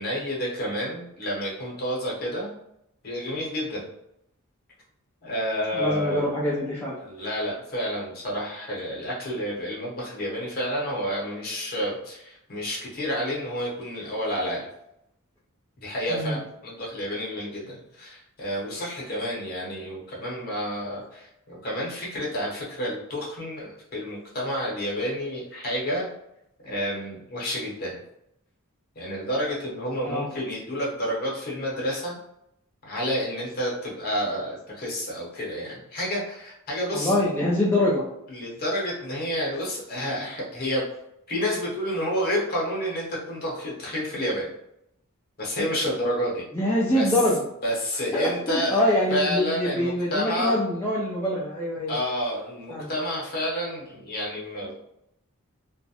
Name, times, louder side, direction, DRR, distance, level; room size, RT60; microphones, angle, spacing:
voice 1, 0.0-2.5 3.0-3.9 5.2-6.3 7.0-14.7 15.8-26.1 26.6-28.0 29.0-32.2 32.8-37.2 38.3-40.8 41.3-44.5 45.4-46.4 46.9-47.2 47.6-48.8 49.1-50.6 51.9-54.7, equal, 45° left, -5 dB, 0.9 m, -29 dB
voice 2, 5.7-7.0 16.1-16.4 30.1-30.3 36.9-38.0 46.5-47.4 48.1-51.9 52.7-52.9, left 1 dB, 10° left, -7 dB, 0.4 m, -24 dB
2.3 x 2.0 x 2.8 m, 0.78 s
head